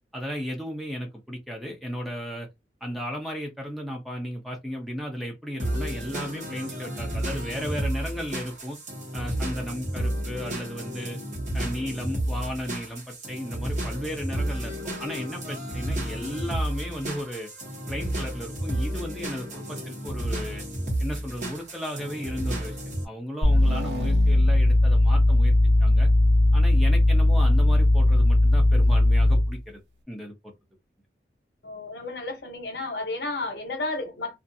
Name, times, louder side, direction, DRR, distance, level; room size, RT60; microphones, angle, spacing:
voice 1, 0.1-2.5 2.8-8.8 9.1-11.2 11.5-17.5 17.9-20.6 21.0-22.8 23.0-25.5 25.8-26.1 26.5-29.8 30.1-30.3, equal, ahead, 0.6 m, -35 dB
sound 1, 5.6-23.0, right 1 dB, 40° right, 1.0 m, -32 dB
sound 2, 23.4-29.6, left 1 dB, 75° right, 1.1 m, -19 dB
voice 2, 31.6-34.4, left 2 dB, 70° left, 0.9 m, -32 dB
2.4 x 2.4 x 2.6 m
head